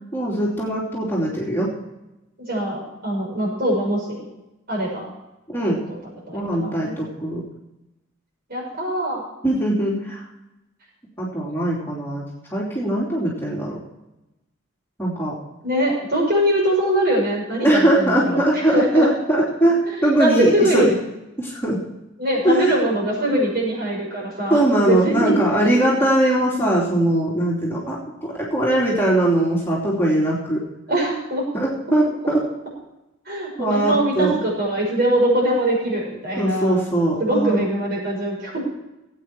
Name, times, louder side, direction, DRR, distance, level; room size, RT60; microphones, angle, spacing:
voice 1, 0.1-1.7 5.5-5.8 6.3-7.4 9.4-10.2 11.2-12.2 12.5-13.8 15.0-15.3 17.6-20.9 21.4-21.8 22.4-22.8 24.5-30.6 31.5-32.4 33.6-34.4 36.4-37.6, right 1 dB, 10° left, -5 dB, 2.9 m, -20 dB
voice 2, 2.4-4.2 4.7-5.0 5.6-6.0 6.3-6.9 8.5-9.2 15.6-19.1 19.9-20.9 22.2-24.6 24.9-25.4 30.9-31.4 33.3-36.7 37.2-38.6, right 1 dB, 50° right, -2 dB, 5.9 m, -22 dB
18.0 x 8.8 x 4.7 m, 0.95 s
head